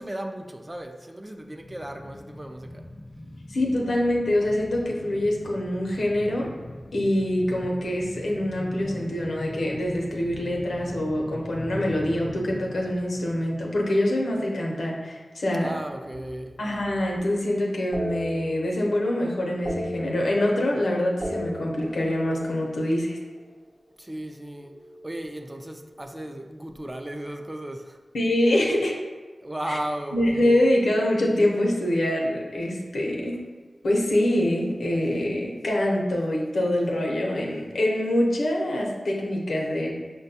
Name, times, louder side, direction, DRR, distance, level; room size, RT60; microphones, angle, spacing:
voice 1, 0.0-2.9 15.6-16.6 24.0-28.0 29.4-30.2, right 1 dB, 20° right, 4 dB, 0.4 m, -35 dB
sound 1, 1.5-14.7 15.0-15.1, left 1 dB, 50° left, 0.3 m, -40 dB
voice 2, 3.5-6.5 6.9-15.7 16.6-23.2 28.1-28.9 29.7-29.8 30.1-33.4 33.8-39.9, left 1 dB, 90° left, -1 dB, 0.6 m, -25 dB
sound 2, 16.0-17.3 17.9-19.1 19.4-20.8 21.1-23.4 24.6-26.4, equal, 40° right, 0.8 m, -37 dB
5.7 x 2.2 x 2.7 m, 1.3 s
wide cardioid pair, 60°, 0 cm